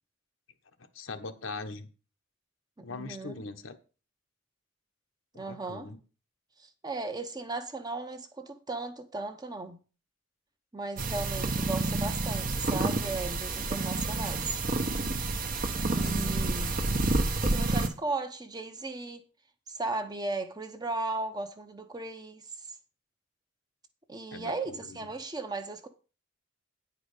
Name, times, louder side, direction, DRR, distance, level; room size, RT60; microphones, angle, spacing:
voice 1, 0.9-1.9 2.8-3.8 5.3-6.0 16.0-16.4 24.3-25.1, left 3 dB, 75° left, 1.1 m, -41 dB
voice 2, 2.8-3.3 5.3-5.9 6.6-9.8 10.7-14.4 16.0-16.8 17.4-19.3 19.7-22.7 24.1-25.9, right 3 dB, 20° right, 0.9 m, -36 dB
sound 1, 11.0-17.9, right 2 dB, 45° right, 1.1 m, -29 dB
9.8 x 4.9 x 6.6 m
head